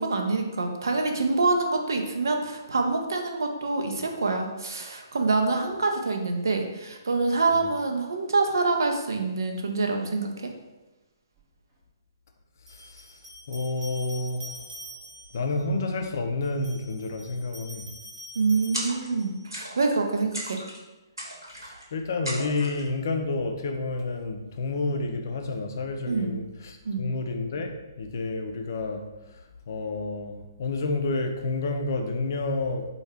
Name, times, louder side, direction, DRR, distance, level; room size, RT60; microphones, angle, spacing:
voice 1, 0.0-10.5 18.3-20.6 26.1-26.4 26.8-27.1, right 3 dB, 60° right, 3 dB, 0.6 m, -26 dB
sound 1, 11.4-11.5 12.7-15.5 16.4-19.5, equal, 15° right, 0.7 m, -45 dB
voice 2, 12.7-13.1 13.5-14.6 15.3-17.9 21.6-27.7 28.0-29.0 29.7-32.8, left 3 dB, 50° left, 4 dB, 0.5 m, -30 dB
sound 2, 18.7-19.2 19.5-20.0 20.3-20.8 21.2-21.8 22.2-22.9, equal, 85° right, 1.0 m, -36 dB
4.3 x 2.3 x 3.3 m, 1.1 s
figure-of-eight pair, 130°, 2 cm